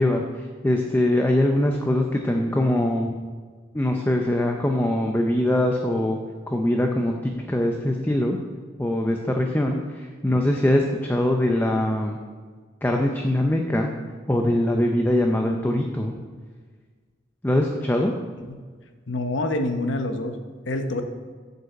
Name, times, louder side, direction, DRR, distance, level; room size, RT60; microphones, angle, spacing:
voice 1, 0.0-3.1 3.7-6.2 6.5-8.4 8.8-12.2 12.8-13.9 14.3-16.1 17.4-18.1, left 1 dB, 10° left, 2 dB, 0.6 m, -22 dB
voice 2, 19.1-20.4 20.7-21.0, left 2 dB, 90° left, 6 dB, 1.0 m, -26 dB
7.9 x 5.5 x 7.6 m, 1.5 s
head